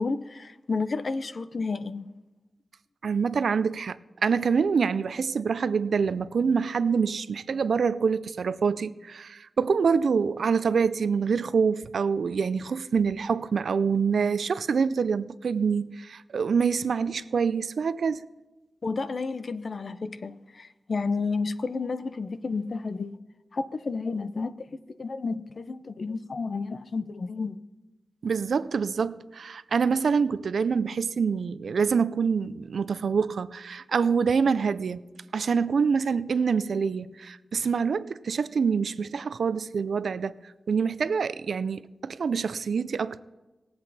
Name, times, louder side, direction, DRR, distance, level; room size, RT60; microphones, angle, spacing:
voice 1, 0.0-2.1 18.8-23.1 23.5-24.5 25.0-27.6, left 4 dB, 60° left, 0.6 m, -31 dB
voice 2, 3.0-4.0 4.2-18.3 28.2-35.0 35.3-40.4 40.7-43.2, right 5 dB, 90° right, 0.4 m, -26 dB
19.5 x 7.8 x 4.1 m
wide cardioid pair, 85°, 0 cm